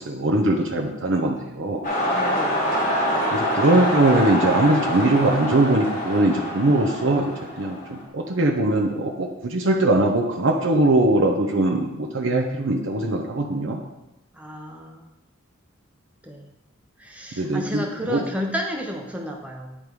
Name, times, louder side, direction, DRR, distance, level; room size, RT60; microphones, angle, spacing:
voice 1, 0.0-1.9 3.3-13.8 17.4-18.2, right 2 dB, 60° right, 0 dB, 0.7 m, -21 dB
sound 1, 1.8-8.0, equal, 35° left, 1.5 m, -25 dB
voice 2, 2.0-2.7 14.3-15.1 16.2-16.5 17.0-19.8, equal, 5° right, 1 dB, 0.6 m, -32 dB
10.0 x 3.6 x 4.6 m, 0.93 s
head